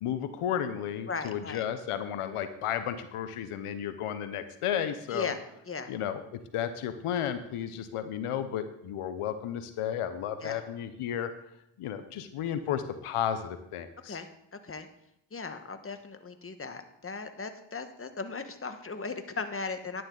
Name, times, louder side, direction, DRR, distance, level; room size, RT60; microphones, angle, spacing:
voice 1, 0.0-5.3 5.9-11.3 11.8-14.2, left 9 dB, 85° left, 11 dB, 0.8 m, -33 dB
voice 2, 1.1-1.6 5.1-5.4 5.6-5.9 10.4-10.6 14.0-14.9 15.3-20.0, left 4 dB, 25° left, 8 dB, 1.3 m, -37 dB
11.0 x 10.5 x 3.9 m, 0.78 s
cardioid pair, 55°, 50 cm